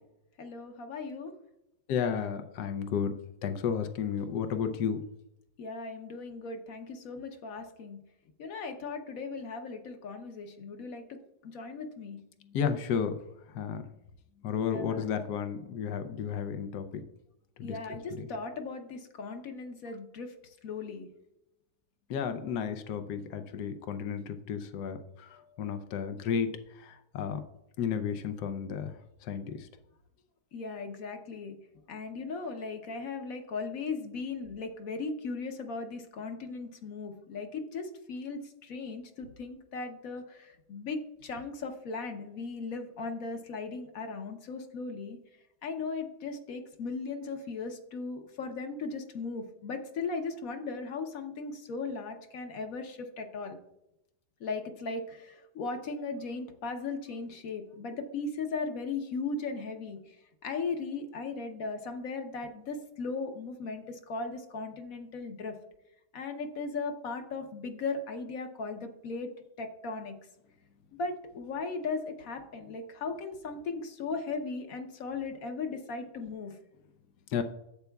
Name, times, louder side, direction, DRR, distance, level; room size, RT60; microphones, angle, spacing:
voice 1, 0.4-1.3 5.6-8.0 8.4-11.2 11.4-12.2 14.7-15.0 17.6-20.3 20.6-21.1 30.5-31.6 31.9-45.2 45.6-53.6 54.4-60.0 60.4-65.6 66.1-69.3 69.6-70.1 71.0-76.6, left 4 dB, 65° left, 6 dB, 1.2 m, -37 dB
voice 2, 1.9-3.1 3.4-5.0 12.5-13.2 13.5-13.8 14.4-17.0 17.6-17.8 18.2-18.3 22.1-27.4 27.8-29.0 29.2-29.7 77.3-77.4, left 7 dB, 85° left, 8 dB, 1.3 m, -32 dB
11.5 x 8.0 x 2.3 m, 0.87 s
omnidirectional pair, 1.7 m